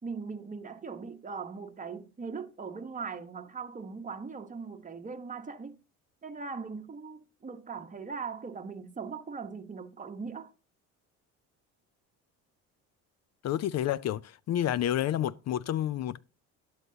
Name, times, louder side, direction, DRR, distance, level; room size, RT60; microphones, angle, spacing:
voice 1, 0.0-5.8 6.2-10.5, right 5 dB, 20° right, 1.2 m, -40 dB
voice 2, 13.4-14.2 14.5-16.2, left 11 dB, 45° left, 0.5 m, -29 dB
12.0 x 10.5 x 2.8 m
supercardioid pair, 85°, 38 cm